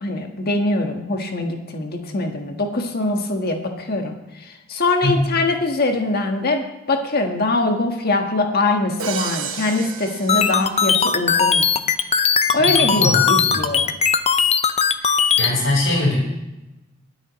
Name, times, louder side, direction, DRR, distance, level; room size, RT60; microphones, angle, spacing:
voice 1, 0.0-4.1 4.4-11.7 12.5-13.8, left 2 dB, 50° left, 4 dB, 1.5 m, -22 dB
voice 2, 5.0-5.3 12.6-13.6 15.0-16.2, left 1 dB, 70° left, -6 dB, 5.1 m, -22 dB
Crash cymbal, 9.0-11.2, right 7 dB, 85° right, 1.0 m, -32 dB
sound 1, 10.3-15.5, left 6 dB, 30° left, 0.6 m, -18 dB
23.0 x 8.9 x 3.1 m, 1.0 s
head